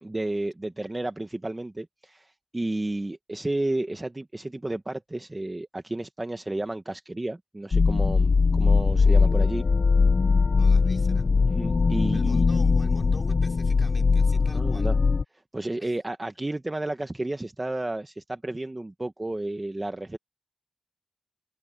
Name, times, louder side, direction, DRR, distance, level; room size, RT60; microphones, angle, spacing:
voice 1, 0.0-9.6 11.5-12.5 14.5-14.9 15.5-20.2, right 2 dB, 20° right, 1.0 m, -32 dB
sound 1, 7.7-15.2, left 4 dB, 60° left, 0.4 m, -21 dB
voice 2, 10.6-11.3 12.1-14.9 15.8-15.9, left 1 dB, 10° left, 5.0 m, -47 dB
open air
wide cardioid pair, 115°, 0 cm